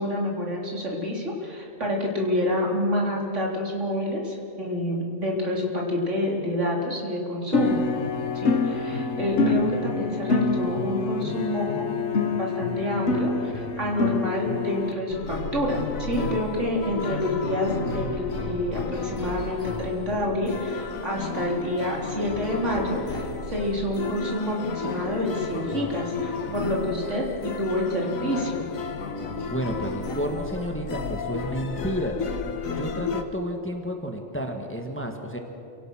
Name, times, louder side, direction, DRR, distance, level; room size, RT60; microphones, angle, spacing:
voice 1, 0.0-7.8 8.3-11.9 12.3-28.7, left 1 dB, 60° right, -1 dB, 4.0 m, -28 dB
sound 1, 7.5-14.9, left 4 dB, 60° left, 1.4 m, -26 dB
sound 2, 15.1-33.2, left 4 dB, 85° left, 1.8 m, -32 dB
voice 2, 29.5-32.2 32.7-35.4, equal, 10° left, 3 dB, 1.6 m, -31 dB
28.5 x 17.5 x 6.3 m, 2.7 s
omnidirectional pair, 1.4 m